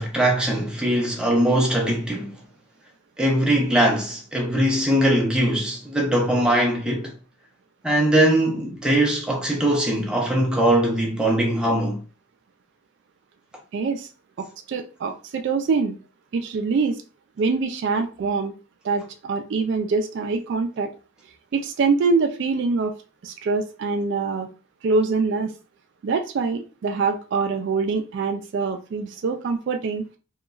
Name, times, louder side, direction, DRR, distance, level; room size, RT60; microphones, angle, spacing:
voice 1, 0.0-2.4 3.2-7.1 7.8-12.0, right 1 dB, 5° right, 0.5 m, -21 dB
voice 2, 13.7-14.1 14.4-16.0 16.3-17.0 17.4-18.5 18.8-20.9 21.5-22.9 23.2-24.5 24.8-25.5 26.0-30.1, right 4 dB, 60° right, 0.3 m, -24 dB
2.8 x 2.2 x 2.4 m
head